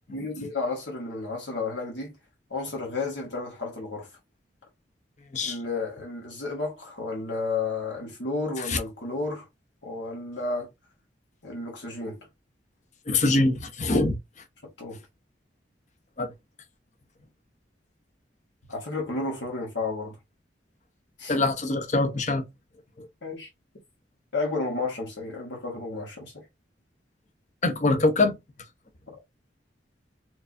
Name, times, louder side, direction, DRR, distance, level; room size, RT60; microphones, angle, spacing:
voice 1, 0.1-2.1 2.5-4.1 5.4-9.5 9.8-10.7 11.4-12.2 14.8-15.0 18.7-20.2 21.2-21.4 23.2-23.5 24.3-26.4, left 3 dB, 80° left, 1.3 m, -32 dB
voice 2, 13.1-14.2 16.2-16.3 21.3-22.4 23.0-23.1 27.6-28.4, left 2 dB, 40° left, 0.7 m, -23 dB
4.5 x 2.4 x 2.6 m
head